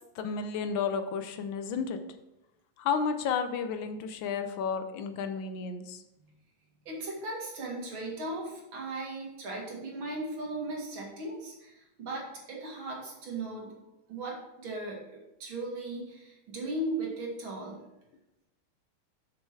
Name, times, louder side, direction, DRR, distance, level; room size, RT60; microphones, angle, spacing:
voice 1, 0.1-2.0 2.8-6.0, left 6 dB, 75° left, 8 dB, 1.4 m, -32 dB
voice 2, 6.9-13.7 14.1-15.0 15.4-17.8, right 2 dB, 75° right, -2 dB, 2.7 m, -37 dB
6.9 x 6.5 x 4.5 m, 0.92 s
omnidirectional pair, 2.2 m